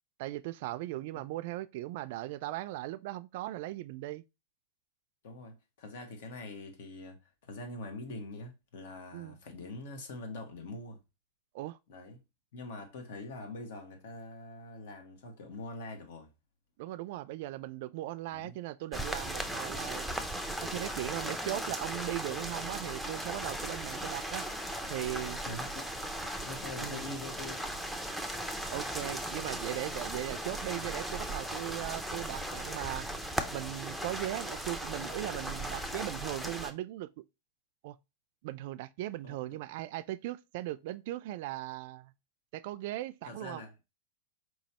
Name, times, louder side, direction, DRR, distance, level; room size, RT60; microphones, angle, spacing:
voice 1, 0.2-4.2 9.1-9.4 11.5-11.8 16.8-20.1 20.6-24.5 24.9-25.4 26.8-27.1 28.7-33.1 33.5-37.2 37.8-38.0 38.4-42.1 42.5-43.6, right 16 dB, 60° right, 0.3 m, -38 dB
voice 2, 5.2-11.0 11.9-12.2 12.5-16.3 18.3-18.6 25.4-26.0 26.4-27.7 33.9-34.3 39.2-39.6 43.2-43.7, left 2 dB, 70° left, 1.5 m, -44 dB
sound 1, 18.9-36.7, right 1 dB, ahead, 0.5 m, -37 dB
4.6 x 3.1 x 2.8 m
supercardioid pair, 145°, 0 cm